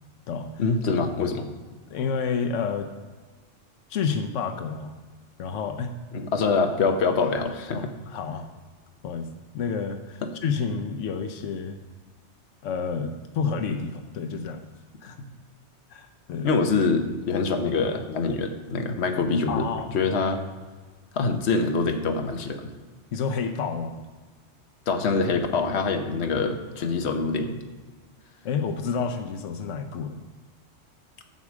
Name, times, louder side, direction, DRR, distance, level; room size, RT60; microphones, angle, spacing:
voice 1, 0.6-1.5 6.1-7.9 10.2-10.3 15.2-15.3 16.4-19.7 19.9-20.4 21.1-22.7 24.9-27.6, left 4 dB, 65° left, 5 dB, 1.2 m, -25 dB
voice 2, 1.9-2.9 3.9-4.9 5.4-5.9 7.7-8.5 9.0-9.3 9.5-11.8 12.6-14.7 15.0-15.2 15.9-16.6 19.5-19.9 23.1-24.0 28.4-30.2, left 5 dB, 90° left, 6 dB, 1.0 m, -29 dB
8.3 x 4.8 x 7.3 m, 1.4 s
omnidirectional pair, 1.2 m